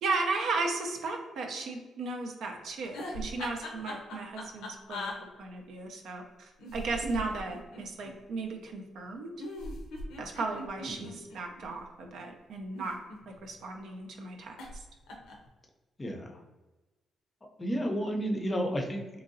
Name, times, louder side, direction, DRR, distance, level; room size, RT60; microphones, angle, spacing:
voice 1, 0.0-5.1 5.4-9.3 10.2-13.0 13.3-14.9, right 3 dB, 75° right, 2 dB, 0.4 m, -35 dB
sound 1, 2.8-5.2 6.6-8.1 9.4-11.7 12.6-13.5 14.6-14.8 15.1-15.5, left 1 dB, 90° left, 0.5 m, -40 dB
voice 2, 16.0-16.4 17.6-19.2, equal, 25° left, 2 dB, 0.5 m, -32 dB
2.9 x 2.6 x 2.5 m, 1.1 s
cardioid pair, 90°, 0 cm